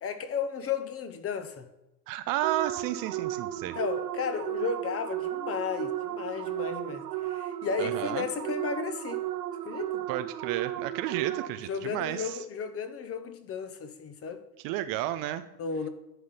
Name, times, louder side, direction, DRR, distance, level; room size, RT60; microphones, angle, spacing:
voice 1, 0.0-1.7 3.7-9.3 9.7-10.0 11.7-14.4 15.6-15.9, left 6 dB, 30° left, 1.0 m, -34 dB
voice 2, 2.1-3.8 7.8-8.3 10.1-12.4 14.6-15.5, right 13 dB, 45° right, 0.6 m, -32 dB
sound 1, 2.4-11.8, right 13 dB, 85° right, 1.0 m, -34 dB
11.0 x 6.1 x 4.2 m
hypercardioid pair, 110°, 49 cm